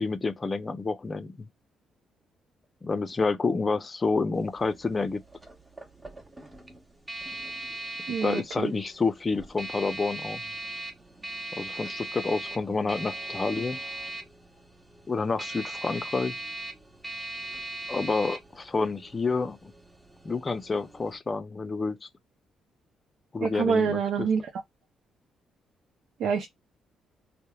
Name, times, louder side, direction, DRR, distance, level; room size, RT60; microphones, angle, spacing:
voice 1, 0.0-1.5 2.8-5.2 8.2-10.4 11.5-13.8 15.1-16.4 17.9-19.7 20.2-22.1 23.3-24.3, left 4 dB, 30° left, 0.5 m, -29 dB
sound 1, 4.4-21.2, right 2 dB, 15° right, 0.8 m, -39 dB
voice 2, 8.1-8.7 23.4-24.4 26.2-26.5, right 6 dB, 75° right, 0.6 m, -26 dB
2.9 x 2.1 x 2.3 m
cardioid pair, 90°, 0 cm